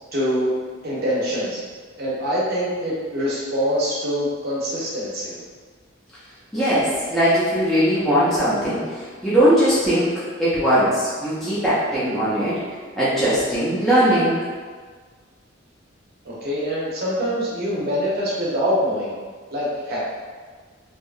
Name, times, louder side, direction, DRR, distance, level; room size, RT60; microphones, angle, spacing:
voice 1, 0.1-0.6 0.8-1.6 2.0-5.4 16.3-19.1 19.5-20.0, equal, 50° right, -6 dB, 0.7 m, -24 dB
voice 2, 6.5-12.6 12.9-14.4, equal, ahead, -12 dB, 0.5 m, -20 dB
2.7 x 2.3 x 2.4 m, 1.5 s
head